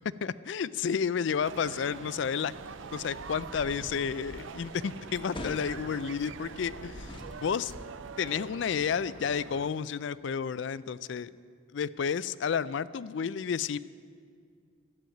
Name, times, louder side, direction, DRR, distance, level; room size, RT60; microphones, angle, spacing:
voice 1, 0.2-2.5 2.9-7.7 8.2-11.3 11.7-13.8, left 6 dB, 60° left, 17 dB, 0.4 m, -31 dB
sound 1, 1.4-9.7, right 5 dB, 70° right, 0.5 m, -45 dB
sound 2, 2.5-7.9, left 1 dB, 25° left, 1.1 m, -46 dB
12.0 x 8.7 x 9.0 m, 2.2 s
head